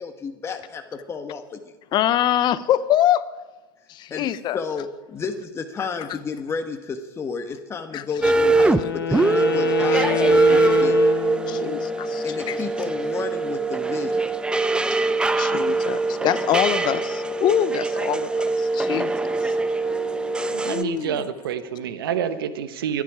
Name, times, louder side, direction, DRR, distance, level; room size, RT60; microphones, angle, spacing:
voice 1, 0.0-1.6 4.1-4.3 4.5-11.0 12.2-14.3, left 5 dB, 20° left, 6 dB, 1.2 m, -32 dB
voice 2, 1.9-3.4 3.9-4.6 7.9-8.3 11.5-12.6 14.9-15.0 15.3-19.1 19.4-19.5 20.6-21.2, left 11 dB, 40° left, 15 dB, 0.8 m, -24 dB
sound 1, 8.2-8.8 9.1-20.8, right 3 dB, 10° right, 0.7 m, -22 dB
Wind instrument woodwind instrument, 8.3-11.9, left 9 dB, 85° left, 1.9 m, -27 dB
sound 2, 14.7-21.9, left 6 dB, 65° left, 3.5 m, -44 dB
voice 3, 20.5-23.0, right 8 dB, 80° right, 11 dB, 1.3 m, -28 dB
24.0 x 10.0 x 4.9 m, 1.1 s
hypercardioid pair, 110°, 12 cm